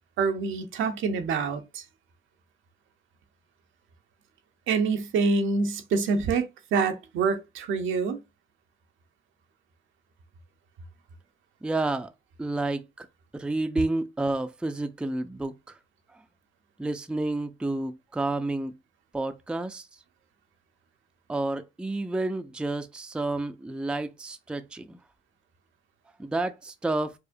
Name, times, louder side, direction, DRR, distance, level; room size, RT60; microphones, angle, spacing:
voice 1, 0.2-1.8 4.7-8.2, right 4 dB, 80° right, 0.7 m, -26 dB
voice 2, 11.6-12.1 12.4-13.1 13.3-15.8 16.8-18.8 19.1-19.9 21.3-25.0 26.2-27.1, right 2 dB, 5° right, 0.4 m, -30 dB
4.8 x 2.1 x 2.6 m
cardioid pair, 90°, 20 cm